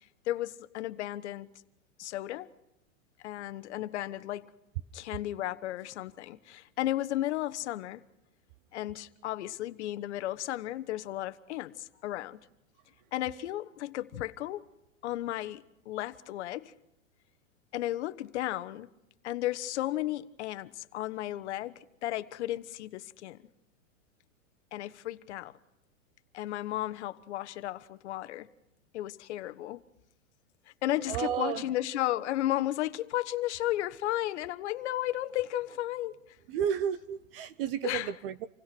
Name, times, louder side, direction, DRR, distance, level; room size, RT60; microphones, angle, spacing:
voice 1, 0.2-1.5 2.0-2.5 3.2-4.5 4.9-8.0 8.7-12.4 13.1-14.6 15.0-16.7 17.7-18.9 19.2-23.4 24.7-25.5 26.3-28.5 28.9-29.8 30.7-36.2 37.8-38.1, left 14 dB, 60° left, 1.2 m, -34 dB
voice 2, 31.1-31.6 36.5-38.5, right 9 dB, 45° right, 0.9 m, -32 dB
27.0 x 17.0 x 6.1 m
hypercardioid pair, 145°, 39 cm